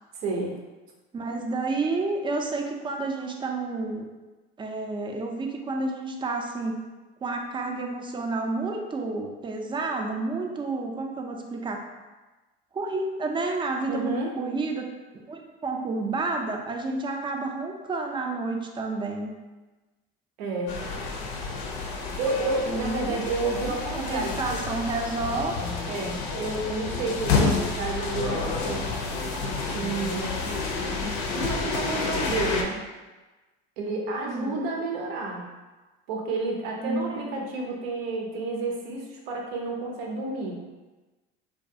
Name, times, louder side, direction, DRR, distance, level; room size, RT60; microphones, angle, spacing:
voice 1, 0.2-0.6 13.9-14.3 20.4-20.8 22.2-24.6 25.9-28.9 29.4-30.4 31.3-32.8 33.8-35.5 36.1-40.6, right 2 dB, 80° right, 0 dB, 0.6 m, -30 dB
voice 2, 1.1-4.1 4.6-6.8 7.2-11.9 12.7-14.9 15.3-19.3 22.6-25.6 34.3-34.6 36.8-37.3, right 3 dB, 15° right, 2 dB, 0.3 m, -30 dB
sound 1, 20.7-32.6, left 4 dB, 65° left, 0.5 m, -29 dB
2.3 x 2.3 x 2.6 m, 1.2 s
hypercardioid pair, 70°, 30 cm